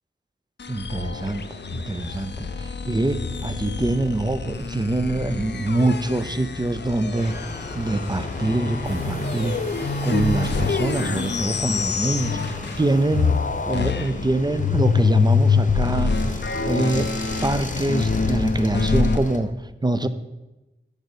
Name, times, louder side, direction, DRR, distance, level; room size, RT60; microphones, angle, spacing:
sound 1, 0.6-12.9 13.1-19.2, left 4 dB, 55° left, 0.5 m, -25 dB
voice 1, 0.7-7.4 7.7-9.6 10.0-13.4 13.7-17.1 17.4-20.1, right 2 dB, 20° right, 11 dB, 0.4 m, -25 dB
sound 2, 7.1-19.4, left 2 dB, 35° left, 0.8 m, -36 dB
sound 3, 8.8-13.9, right 3 dB, 85° right, 0.9 m, -44 dB
6.6 x 5.0 x 4.8 m, 1.0 s
wide cardioid pair, 60°, 21 cm